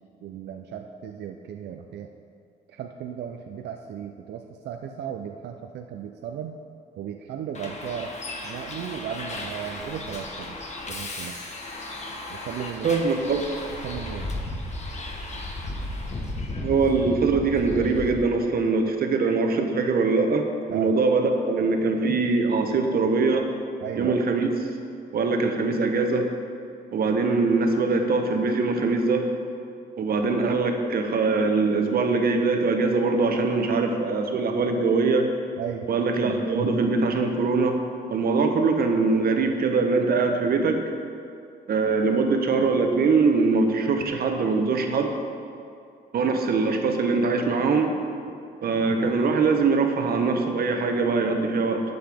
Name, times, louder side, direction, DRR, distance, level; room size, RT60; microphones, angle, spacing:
voice 1, 0.2-2.1 2.7-6.6 7.0-8.1 8.4-10.6 10.9-11.4 12.3-12.9 13.3-13.4 13.8-14.3 20.7-20.9 22.7-23.1 23.8-24.2 35.6-35.9, right 8 dB, 75° right, 4 dB, 0.5 m, -35 dB
Bus, 7.5-18.1, left 2 dB, 40° left, 1.3 m, -35 dB
voice 2, 12.8-13.4 16.6-23.5 23.9-24.5 25.1-26.3 26.9-29.3 30.0-35.3 35.9-37.8 38.1-40.8 41.7-45.1 46.1-47.9 48.6-51.8, right 4 dB, 60° right, 4 dB, 1.0 m, -22 dB
12.0 x 7.8 x 3.5 m, 2.4 s
cardioid pair, 100°, 17 cm